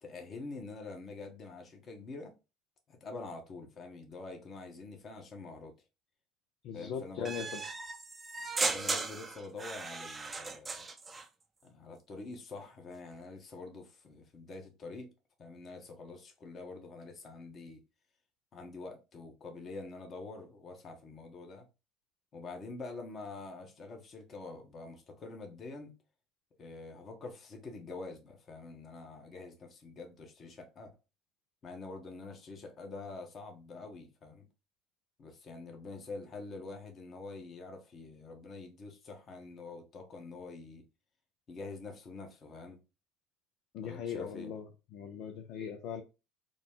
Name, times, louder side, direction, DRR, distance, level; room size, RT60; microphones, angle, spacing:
voice 1, 0.0-2.3 2.9-5.7 6.7-7.6 8.6-10.9 11.6-15.1 15.4-17.8 18.5-21.6 22.3-25.9 26.6-30.9 31.6-34.5 35.2-40.8 41.5-42.8 43.8-44.5, left 3 dB, 40° left, 1.1 m, -46 dB
voice 2, 6.6-7.6 43.7-44.6 44.9-46.0, left 7 dB, 60° left, 0.5 m, -39 dB
sound 1, 7.2-11.3, right 4 dB, 25° right, 0.6 m, -36 dB
3.9 x 2.2 x 3.7 m
hypercardioid pair, 70°, 0 cm